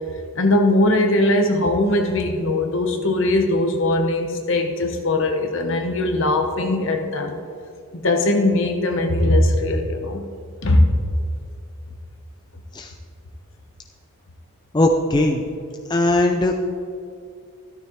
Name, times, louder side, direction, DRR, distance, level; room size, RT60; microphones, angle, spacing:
voice 1, 0.4-7.4 7.9-10.2 10.6-10.9, left 1 dB, 60° left, 4 dB, 1.1 m, -20 dB
voice 2, 14.7-15.4 15.9-16.8, left 1 dB, 20° left, 3 dB, 0.4 m, -19 dB
13.5 x 12.5 x 3.1 m, 2.3 s
head